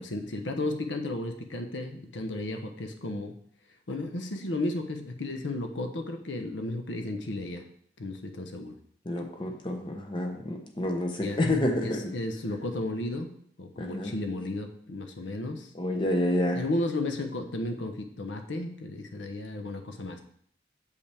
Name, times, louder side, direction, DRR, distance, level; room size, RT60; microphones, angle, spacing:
voice 1, 0.0-3.3 3.9-7.6 8.0-8.7 11.2-11.4 11.8-13.3 13.6-15.7 16.5-20.2, left 2 dB, 85° left, 5 dB, 0.8 m, -33 dB
voice 2, 9.1-12.1 13.8-14.1 15.7-16.6, left 1 dB, 25° left, 4 dB, 0.8 m, -29 dB
6.6 x 5.5 x 3.4 m, 0.65 s
head